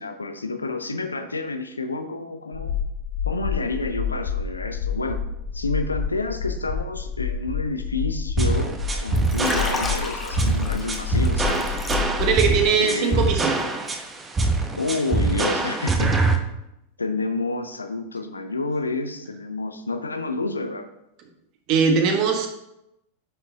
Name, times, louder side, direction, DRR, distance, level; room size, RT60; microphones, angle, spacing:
voice 1, 0.0-2.8 3.3-5.2 5.5-11.8 12.8-13.3 14.8-16.2 17.0-20.9, left 3 dB, 80° left, 8 dB, 0.6 m, -29 dB
sound 1, 2.5-12.7, left 6 dB, 55° left, 1.2 m, -29 dB
sound 2, 8.4-16.4, right 3 dB, 15° right, 0.9 m, -23 dB
Liquid, 9.1-12.5 12.8-13.1, left 2 dB, 15° left, 1.1 m, -33 dB
voice 2, 12.2-13.6 21.7-22.5, right 5 dB, 40° right, 4 dB, 1.2 m, -20 dB
9.5 x 6.0 x 2.8 m, 0.85 s
figure-of-eight pair, 90°, 0 cm